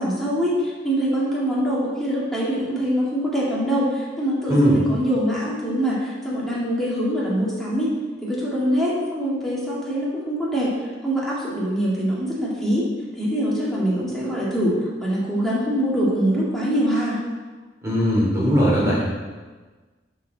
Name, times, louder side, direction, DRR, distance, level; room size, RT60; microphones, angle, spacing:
voice 1, 0.0-7.9 8.2-10.7 11.0-12.8 13.2-17.2, equal, ahead, -8 dB, 2.1 m, -24 dB
voice 2, 4.5-4.8 17.8-19.1, equal, 15° right, -6 dB, 2.7 m, -19 dB
11.0 x 4.6 x 4.1 m, 1.3 s
head